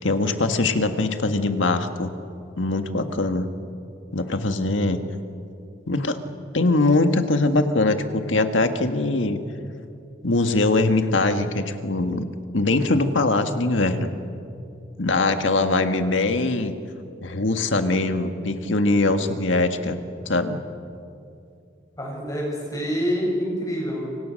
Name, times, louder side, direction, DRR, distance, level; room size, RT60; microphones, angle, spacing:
voice 1, 0.0-2.1 2.6-3.5 4.1-5.0 5.9-6.2 6.5-9.4 10.2-12.2 12.5-14.1 15.0-16.7 17.2-20.6, left 2 dB, 90° left, 7 dB, 1.7 m, -22 dB
voice 2, 22.0-24.2, equal, 20° left, -2 dB, 7.9 m, -26 dB
28.0 x 25.5 x 6.5 m, 2.6 s
head